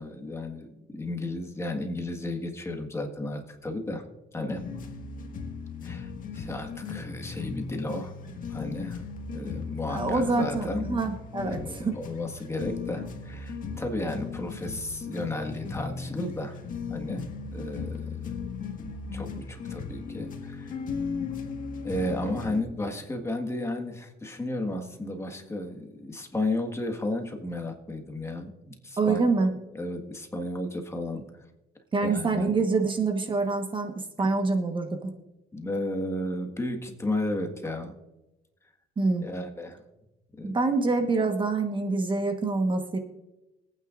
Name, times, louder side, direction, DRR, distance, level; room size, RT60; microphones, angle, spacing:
voice 1, 0.0-4.0 4.3-4.7 5.8-9.0 9.3-10.8 11.4-16.6 16.9-18.2 19.1-20.8 21.8-29.5 29.8-31.2 32.0-32.4 34.2-34.3 35.5-37.9 39.2-39.8 40.4-40.6, left 1 dB, 15° left, 4 dB, 1.7 m, -33 dB
sound 1, 4.5-22.6, left 5 dB, 55° left, 1.8 m, -36 dB
voice 2, 9.8-12.0 29.0-29.5 31.9-35.1 39.0-39.3 40.4-43.0, right 3 dB, 30° right, 5 dB, 1.3 m, -26 dB
24.5 x 9.2 x 2.6 m, 1.0 s
cardioid pair, 110°, 17 cm